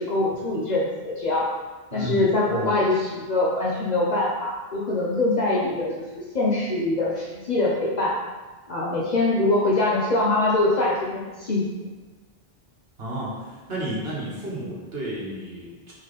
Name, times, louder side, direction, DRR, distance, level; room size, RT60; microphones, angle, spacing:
voice 1, 0.0-1.5 1.9-8.1 8.7-11.6, left 2 dB, 50° left, -5 dB, 0.7 m, -23 dB
voice 2, 1.9-2.2 2.5-2.7 13.0-13.3 13.7-15.9, right 1 dB, 70° right, -5 dB, 1.3 m, -32 dB
4.1 x 3.3 x 4.0 m, 1.3 s
omnidirectional pair, 1.1 m